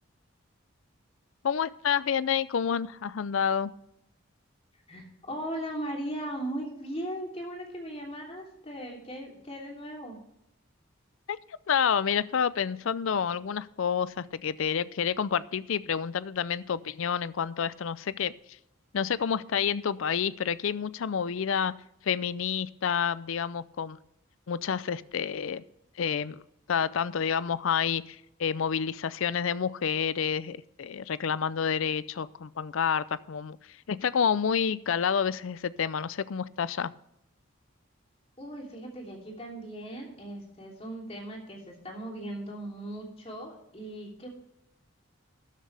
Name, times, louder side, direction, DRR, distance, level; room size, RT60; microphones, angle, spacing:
voice 1, 1.4-3.7 11.3-11.4 11.7-18.3 18.9-21.7 22.0-24.0 24.5-25.6 26.0-26.4 26.7-36.9, left 7 dB, 70° left, 18 dB, 0.4 m, -29 dB
voice 2, 4.9-10.2 38.4-44.3, right 1 dB, 30° left, 0 dB, 3.1 m, -38 dB
13.0 x 10.0 x 3.4 m, 0.79 s
head